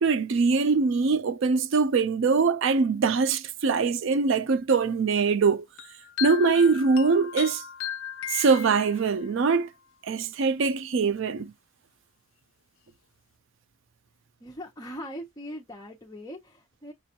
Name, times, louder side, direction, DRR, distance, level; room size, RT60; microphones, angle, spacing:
voice 1, 0.0-5.6 6.2-7.6 8.3-9.7 10.1-11.5, right 4 dB, 60° right, 0.4 m, -23 dB
sound 1, 5.8-9.3, left 10 dB, 65° left, 0.3 m, -36 dB
voice 2, 14.4-16.9, equal, 20° left, 0.5 m, -40 dB
6.6 x 2.2 x 2.8 m
head